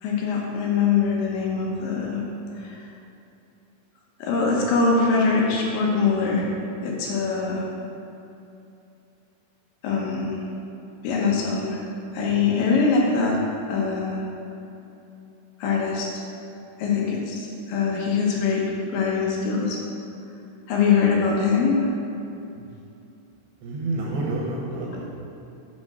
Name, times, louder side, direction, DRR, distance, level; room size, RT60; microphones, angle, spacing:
voice 1, 0.0-2.2 2.6-2.8 4.2-6.5 6.8-7.6 9.8-10.4 11.0-11.8 12.1-13.4 13.7-14.3 15.6-16.1 16.8-18.6 18.9-19.8 20.7-21.9 24.9-25.0, left 5 dB, 75° left, -2 dB, 3.1 m, -23 dB
voice 2, 23.6-25.1, right 2 dB, 75° right, -2 dB, 2.8 m, -29 dB
8.9 x 4.3 x 6.0 m, 2.8 s
omnidirectional pair, 5.6 m